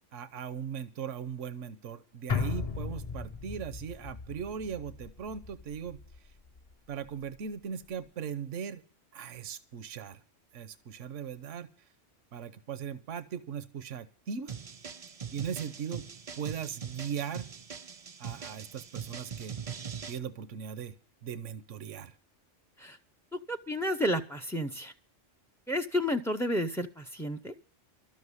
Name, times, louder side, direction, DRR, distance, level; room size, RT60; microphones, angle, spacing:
voice 1, 0.1-6.0 6.9-8.8 9.1-10.2 10.5-11.7 12.3-14.5 15.3-16.0 16.3-17.5 18.2-19.6 20.1-20.9 21.2-22.1, right 7 dB, 85° right, 12 dB, 1.2 m, -38 dB
sound 1, 2.3-6.7 7.1-7.2, left 5 dB, 35° left, 0.7 m, -37 dB
sound 2, 14.5-20.2, right 7 dB, 40° right, 0.6 m, -42 dB
voice 2, 23.5-24.9 25.7-27.5, equal, 5° left, 10 dB, 0.3 m, -31 dB
12.5 x 7.2 x 9.7 m, 0.42 s
omnidirectional pair, 1.2 m